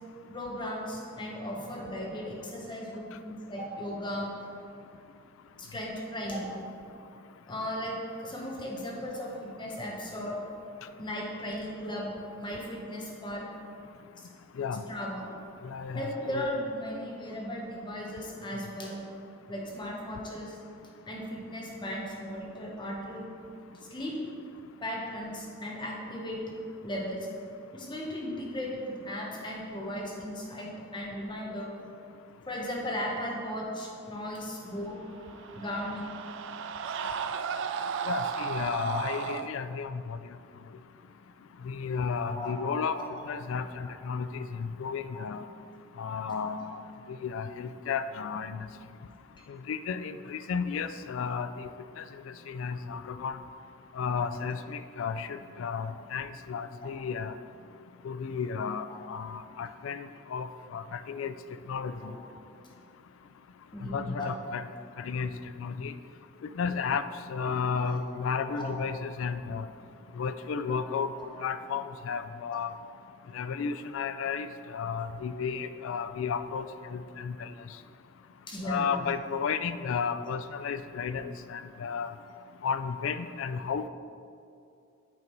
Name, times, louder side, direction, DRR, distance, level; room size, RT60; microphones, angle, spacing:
voice 1, 0.3-4.3 5.6-6.5 7.4-10.4 11.0-12.1 12.4-13.5 14.9-15.3 15.9-19.0 19.5-20.6 21.1-23.3 23.9-24.2 24.8-26.4 26.8-27.3 27.7-31.7 32.5-35.0 35.5-36.1 38.9-39.0 42.3-42.6 42.9-43.2 43.8-43.9 44.4-44.5 45.1-45.3 46.3-46.5 52.9-53.0 54.3-54.4 58.9-59.0 62.0-62.2 63.7-64.3 67.7-67.8 68.5-68.7 70.7-70.8 71.2-71.3 72.5-72.6 78.5-79.0, equal, 25° left, -2 dB, 1.1 m, -36 dB
voice 2, 15.6-16.5 38.0-40.4 41.6-45.4 46.0-46.8 47.1-48.7 49.5-51.7 52.0-53.4 53.9-57.4 58.0-61.4 61.7-62.1 63.8-64.7 65.0-65.3 65.6-66.0 66.4-69.7 70.1-71.1 71.4-72.7 73.3-77.7 78.6-82.1 82.6-83.9, left 6 dB, 70° left, 12 dB, 0.3 m, -33 dB
sound 1, 35.0-39.5, right 6 dB, 65° right, 0.3 m, -34 dB
8.4 x 3.9 x 4.6 m, 2.5 s
head